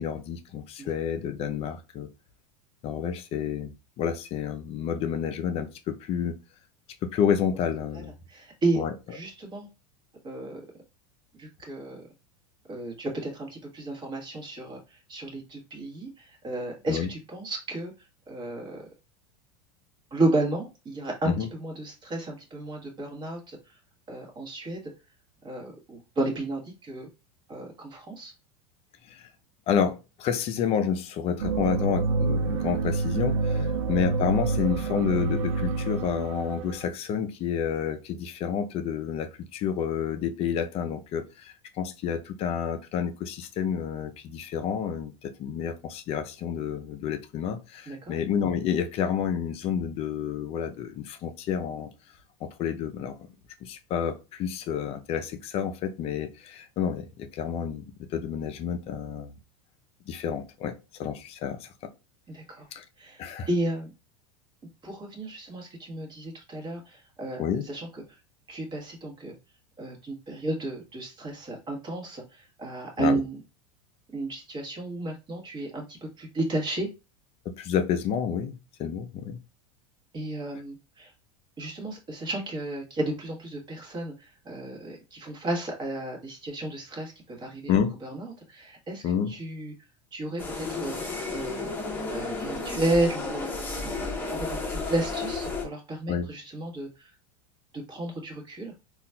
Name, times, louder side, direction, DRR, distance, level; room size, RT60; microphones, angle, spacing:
voice 1, 0.0-2.1 2.8-3.7 4.0-6.4 7.0-8.1 8.8-8.9 16.9-17.1 21.3-21.5 29.1-29.3 29.7-51.9 52.4-53.2 53.6-57.8 58.1-59.3 60.1-61.7 62.7-62.8 63.2-63.5 67.4-67.7 73.0-73.2 77.5-78.5 78.8-79.4 87.7-87.9 89.0-89.3 94.7-94.9 96.1-96.3, left 8 dB, 35° left, 0.4 m, -29 dB
voice 2, 8.3-8.8 9.1-9.7 10.2-10.6 11.3-12.0 12.7-17.9 18.3-18.8 20.1-21.3 21.6-23.6 24.1-24.8 25.4-27.1 27.5-28.3 33.7-33.8 47.9-48.1 62.3-62.7 63.0-63.2 63.5-63.9 64.8-67.9 68.5-69.3 69.8-73.4 74.1-76.9 80.1-81.1 81.6-87.7 88.0-89.0 89.3-89.7 90.1-91.7 92.1-93.5 93.8-97.1 97.7-98.7, right 2 dB, 25° right, 1.2 m, -32 dB
sound 1, 31.4-36.9, right 4 dB, 90° right, 0.5 m, -27 dB
sound 2, 90.4-95.7, left 3 dB, 10° left, 0.8 m, -32 dB
3.9 x 2.3 x 2.2 m
supercardioid pair, 135°, 17 cm